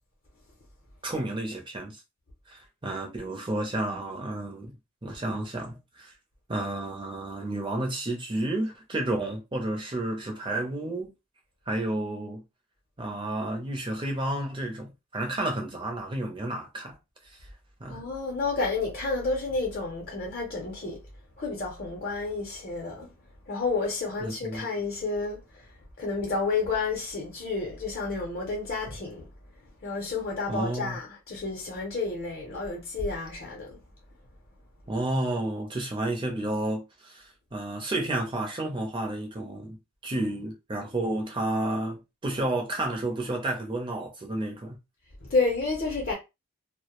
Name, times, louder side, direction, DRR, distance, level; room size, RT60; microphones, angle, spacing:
voice 1, 1.0-2.0 2.5-4.7 5.0-6.1 6.5-11.1 11.7-12.4 13.0-17.0 17.8-18.0 24.2-24.6 30.5-31.0 34.9-39.8 40.0-44.8, right 1 dB, 20° right, 0.5 m, -31 dB
voice 2, 17.9-21.0 21.4-23.1 23.5-25.7 26.0-29.3 29.8-33.8 45.2-46.1, left 3 dB, 40° left, 0.6 m, -30 dB
2.2 x 2.0 x 2.9 m
head